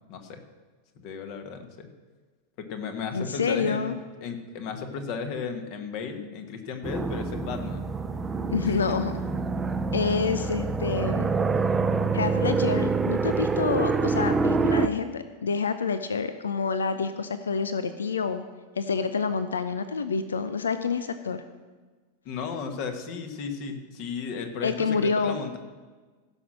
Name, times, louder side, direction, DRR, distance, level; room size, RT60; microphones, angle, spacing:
voice 1, 0.1-0.4 0.9-1.9 2.6-3.9 4.2-7.8 8.6-9.0 22.2-25.6, left 5 dB, 45° left, 6 dB, 1.6 m, -34 dB
voice 2, 3.1-4.0 8.5-9.1 9.9-11.3 12.1-18.4 18.8-21.4 24.6-25.4, left 5 dB, 70° left, 11 dB, 0.5 m, -28 dB
sound 1, 6.8-14.9, right 4 dB, 15° right, 0.6 m, -26 dB
15.5 x 6.4 x 6.3 m, 1.3 s
figure-of-eight pair, 90°, 0 cm